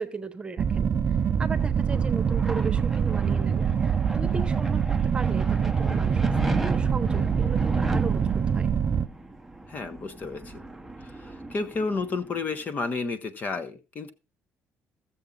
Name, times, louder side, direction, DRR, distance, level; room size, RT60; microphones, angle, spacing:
voice 1, 0.0-8.7, right 4 dB, 20° right, 1.1 m, -37 dB
sound 1, 0.6-9.1, right 7 dB, 40° right, 0.5 m, -24 dB
sound 2, 1.3-12.6, right 1 dB, 5° right, 0.8 m, -36 dB
voice 2, 9.7-10.5 11.0-14.1, left 4 dB, 35° left, 1.0 m, -31 dB
15.0 x 7.2 x 3.8 m
cardioid pair, 135°, 5 cm